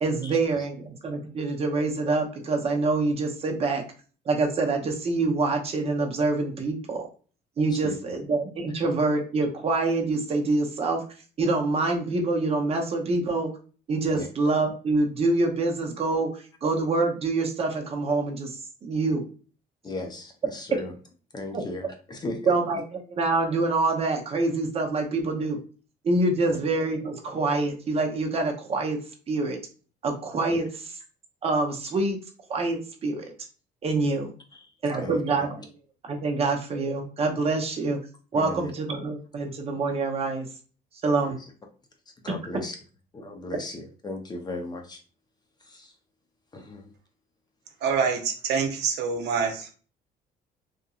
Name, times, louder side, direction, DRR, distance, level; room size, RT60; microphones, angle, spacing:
voice 1, 0.0-3.8 4.3-7.1 7.6-11.0 11.4-13.5 13.9-16.3 16.6-19.2 22.5-25.6 26.0-29.0 29.3-29.6 30.0-30.7 31.4-32.2 32.5-33.3 33.8-34.3 34.8-35.7 36.0-38.0 38.3-40.5 41.0-41.4, right 3 dB, 35° right, 3 dB, 0.7 m, -26 dB
voice 2, 19.8-20.9 21.3-22.5 26.5-26.6 30.5-30.6 34.5-34.7 34.9-35.2 38.3-38.7 41.2-41.3 42.2-42.7 43.1-45.0 45.6-45.9 46.5-46.9, left 2 dB, 25° left, 4 dB, 0.6 m, -36 dB
voice 3, 47.8-49.7, right 6 dB, 80° right, 4 dB, 0.7 m, -26 dB
2.8 x 2.5 x 2.3 m, 0.38 s
cardioid pair, 110°, 17 cm